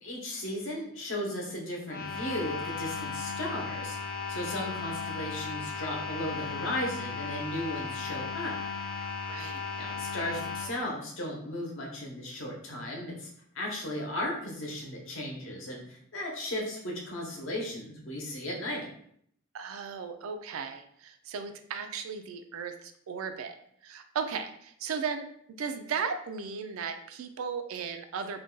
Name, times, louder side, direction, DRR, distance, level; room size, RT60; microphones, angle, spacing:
voice 1, 0.0-4.0 4.3-8.6 9.8-13.3 13.5-18.9, left 1 dB, 65° left, -1 dB, 0.8 m, -36 dB
sound 1, 1.8-10.7, left 5 dB, 40° left, 0.5 m, -36 dB
voice 2, 9.3-9.6 19.5-23.6 23.8-25.2 25.6-28.4, right 6 dB, 75° right, 7 dB, 0.3 m, -36 dB
2.5 x 2.2 x 3.7 m, 0.67 s
head